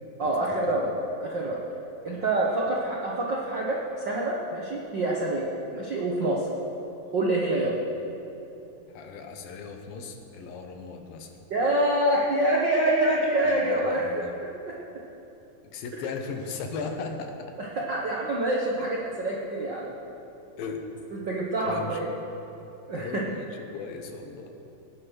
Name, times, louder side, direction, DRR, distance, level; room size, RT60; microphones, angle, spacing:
voice 1, 0.2-0.9 1.2-1.6 2.0-5.5 5.7-6.5 7.1-7.8 11.5-14.1 14.6-14.7 17.6-19.9 21.1-22.1 22.9-23.2, right 1 dB, 80° right, -3 dB, 1.0 m, -26 dB
voice 2, 8.9-11.3 13.4-14.4 15.7-17.3 18.8-18.9 20.6-21.0 21.6-22.0 22.9-24.5, left 4 dB, 80° left, 4 dB, 2.9 m, -37 dB
18.0 x 9.7 x 6.3 m, 3.0 s
omnidirectional pair, 4.0 m